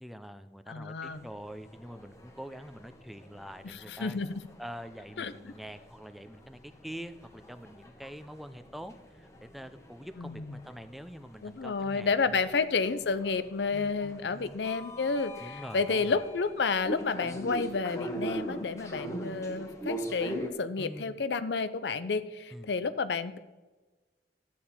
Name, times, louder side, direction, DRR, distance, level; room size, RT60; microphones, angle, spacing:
voice 1, 0.0-4.2 4.6-12.5 13.7-14.6 15.4-16.2 20.8-21.2 22.5-22.7, equal, ahead, 10 dB, 0.5 m, -45 dB
voice 2, 0.7-1.2 3.6-4.4 5.2-5.5 10.2-10.6 11.4-23.4, left 4 dB, 75° left, 14 dB, 0.6 m, -31 dB
sound 1, 1.1-20.5, right 1 dB, 15° left, 1.1 m, -42 dB
12.5 x 8.5 x 4.3 m, 1.2 s
head